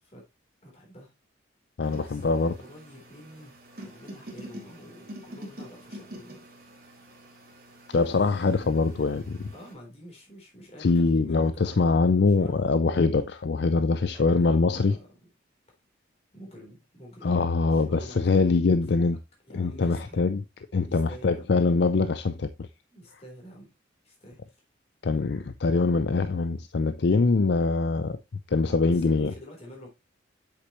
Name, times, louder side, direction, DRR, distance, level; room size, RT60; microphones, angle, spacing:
voice 1, 0.6-1.1 2.0-3.6 3.8-6.4 8.0-9.2 9.5-12.8 14.1-15.3 16.3-17.4 17.7-19.1 19.5-20.2 20.9-21.5 22.9-23.7 24.0-24.6 28.6-29.9, equal, 30° left, 3.7 m, -48 dB
voice 2, 1.8-2.5 7.9-9.4 10.8-15.0 17.2-19.2 19.5-20.4 20.7-22.7 25.0-28.2 28.5-29.3, left 4 dB, 55° left, 0.4 m, -23 dB
sound 1, 1.8-9.7, right 1 dB, 50° right, 2.6 m, -46 dB
8.1 x 6.6 x 3.0 m
head